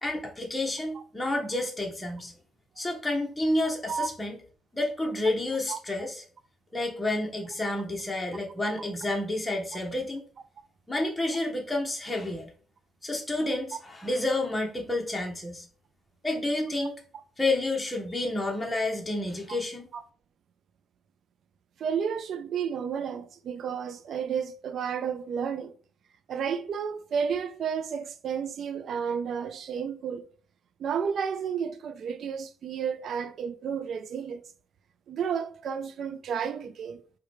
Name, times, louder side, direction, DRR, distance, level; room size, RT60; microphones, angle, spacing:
voice 1, 0.0-2.3 2.8-4.4 4.7-6.2 6.7-10.3 10.9-12.5 13.0-15.7 16.2-16.9 17.4-19.9, left 2 dB, 15° left, 0.8 m, -30 dB
voice 2, 21.8-25.8 26.3-30.2 30.8-34.4 35.1-37.0, right 7 dB, 65° right, 0.4 m, -32 dB
4.7 x 2.2 x 3.2 m
cardioid pair, 90°, 0 cm